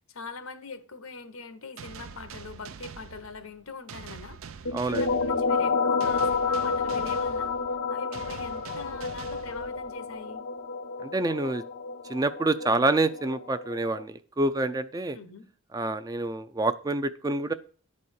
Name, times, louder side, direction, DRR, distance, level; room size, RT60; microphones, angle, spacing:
voice 1, 0.1-4.4 4.8-7.5 7.9-10.5 15.1-15.4, left 4 dB, 90° left, 1.1 m, -42 dB
sound 1, 1.8-10.2, right 6 dB, 80° right, 0.6 m, -45 dB
sound 2, 4.6-14.0, left 4 dB, 70° left, 0.6 m, -30 dB
voice 2, 4.7-5.0 11.0-11.6 12.1-15.2 15.7-17.5, right 2 dB, 20° right, 0.4 m, -27 dB
11.0 x 4.2 x 6.4 m
head